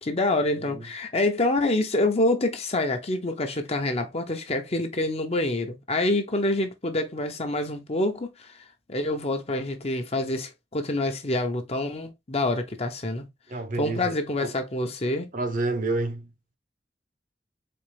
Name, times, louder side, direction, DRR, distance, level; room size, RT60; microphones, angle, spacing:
voice 1, 0.0-8.5 8.9-13.3 13.8-15.3, left 2 dB, 35° left, 0.8 m, -26 dB
voice 2, 13.5-14.1 14.4-14.5 15.3-16.3, right 2 dB, 50° right, 0.8 m, -29 dB
4.3 x 3.0 x 3.3 m
head